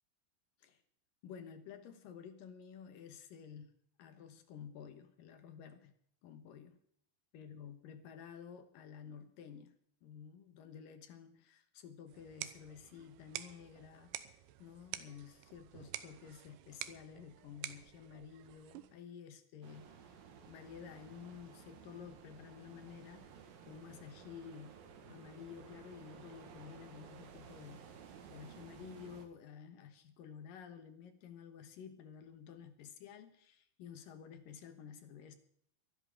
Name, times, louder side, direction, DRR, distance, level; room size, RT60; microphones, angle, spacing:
voice 1, 1.2-3.7 4.0-5.9 6.2-6.8 7.3-9.7 10.0-14.2 14.6-20.1 20.5-27.9 28.3-35.3, left 7 dB, 65° left, 8 dB, 2.5 m, -52 dB
sound 1, 12.1-19.1, right 14 dB, 85° right, 3.1 m, -49 dB
sound 2, 19.6-29.3, right 7 dB, 65° right, 3.2 m, -55 dB
23.0 x 12.0 x 3.8 m, 0.67 s
omnidirectional pair, 5.0 m